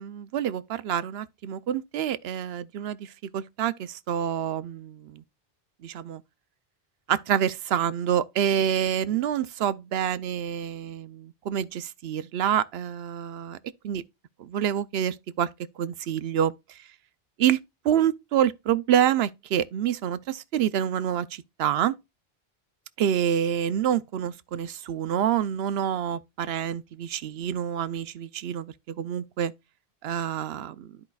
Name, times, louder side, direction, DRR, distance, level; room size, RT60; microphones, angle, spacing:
voice 1, 0.0-5.2 5.8-6.2 7.1-13.6 13.8-14.0 14.4-15.5 15.8-16.5 17.4-17.6 17.8-21.9 23.0-29.5 30.0-30.9, right 9 dB, 80° right, 0.8 m, -27 dB
12.5 x 4.9 x 2.3 m
omnidirectional pair, 1.0 m